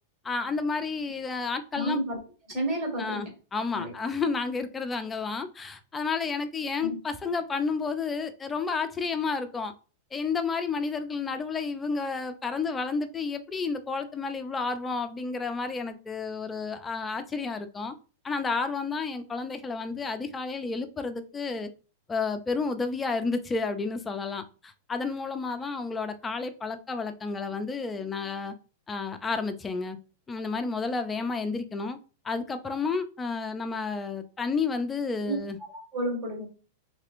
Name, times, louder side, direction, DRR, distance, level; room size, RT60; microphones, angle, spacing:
voice 1, 0.2-2.0 3.0-9.7 10.1-17.9 18.2-21.7 22.1-28.5 28.9-30.0 30.3-32.0 32.2-35.6, left 4 dB, 15° left, 0.4 m, -31 dB
voice 2, 1.7-2.2 2.5-3.3 3.7-3.9 6.8-7.0 35.3-35.4 35.7-36.5, right 1 dB, 40° right, 1.9 m, -31 dB
3.4 x 3.2 x 2.4 m
supercardioid pair, 140°, 0 cm